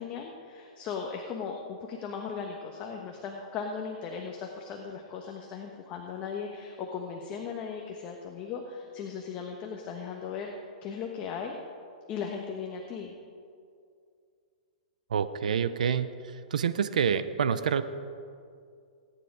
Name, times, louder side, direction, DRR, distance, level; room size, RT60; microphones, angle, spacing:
voice 1, 0.0-10.5 10.8-11.6 12.1-13.1, left 6 dB, 30° left, 2 dB, 1.3 m, -37 dB
voice 2, 15.1-17.8, right 7 dB, 80° right, 12 dB, 0.7 m, -27 dB
18.0 x 9.8 x 4.8 m, 2.3 s
hypercardioid pair, 140°, 4 cm